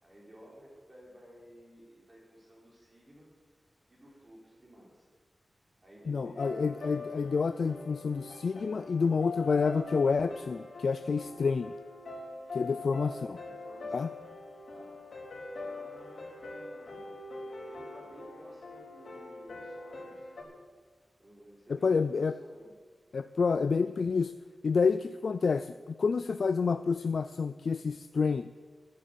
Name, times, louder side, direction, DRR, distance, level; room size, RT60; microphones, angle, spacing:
voice 1, 0.0-3.3 3.9-5.1 5.8-6.5 13.4-14.2 14.7-15.0 15.5-17.2 17.6-20.3 21.2-22.8, equal, 30° right, -4 dB, 4.7 m, -54 dB
voice 2, 6.1-11.7 12.5-13.4 13.9-14.1 21.7-22.4 23.1-24.3 24.6-28.5, left 5 dB, 70° left, 12 dB, 0.3 m, -28 dB
sound 1, 6.4-20.4, left 3 dB, 85° left, 4.6 m, -43 dB
14.0 x 9.7 x 6.9 m, 1.5 s
wide cardioid pair, 130°, 0 cm